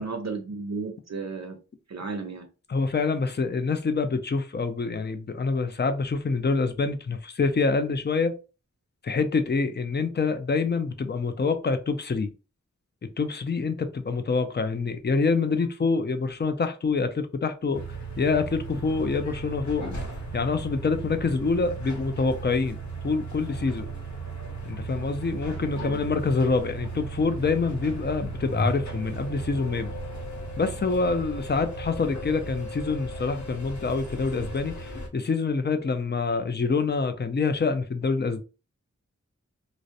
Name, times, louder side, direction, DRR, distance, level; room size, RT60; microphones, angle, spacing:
voice 1, 0.0-1.6 1.9-2.5 25.8-26.0, right 4 dB, 65° right, 0.5 m, -33 dB
voice 2, 2.7-8.3 9.0-12.3 13.0-17.8 18.2-19.9 20.3-23.9 24.6-29.9 30.6-38.4, left 4 dB, 35° left, 0.4 m, -26 dB
sound 1, 17.7-35.1, right 2 dB, 75° left, 0.8 m, -36 dB
2.4 x 2.0 x 2.6 m
wide cardioid pair, 50°, 30 cm